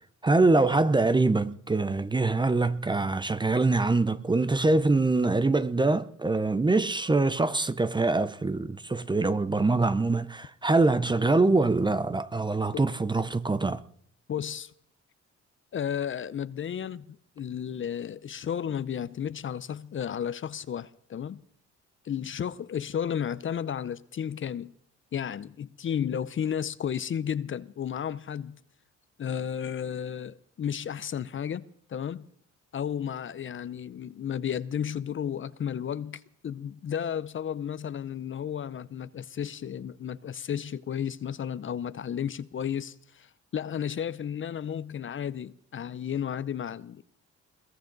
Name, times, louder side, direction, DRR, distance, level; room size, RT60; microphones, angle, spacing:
voice 1, 0.2-13.8, right 3 dB, 15° right, 0.6 m, -24 dB
voice 2, 14.3-14.7 15.7-21.4 22.0-24.7 25.1-28.6 29.2-32.3 32.7-47.0, left 8 dB, 40° left, 0.6 m, -33 dB
21.5 x 15.5 x 4.0 m
cardioid pair, 90°, 30 cm